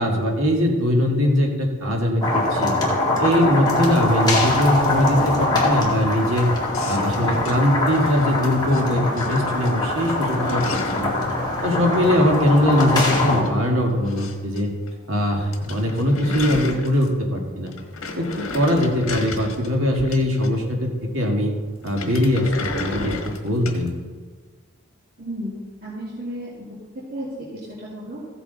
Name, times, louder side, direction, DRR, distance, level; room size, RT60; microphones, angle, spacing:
voice 1, 0.0-2.7 3.2-6.5 6.8-11.1 11.6-14.7 15.1-17.7 18.1-21.5 21.8-23.9, equal, 70° right, 0 dB, 2.0 m, -21 dB
sound 1, 2.2-13.4, left 2 dB, 20° left, 2.2 m, -23 dB
sound 2, 6.7-8.8 9.2-9.7 10.0-11.2 12.5-14.6 14.9-15.0 15.3-15.4 15.5-17.3 17.7-20.8 21.8-23.9, left 3 dB, 75° left, 1.4 m, -33 dB
voice 2, 25.2-26.7 27.1-27.5 27.8-28.2, equal, 45° right, -8 dB, 2.2 m, -33 dB
15.0 x 7.9 x 4.1 m, 1.4 s
head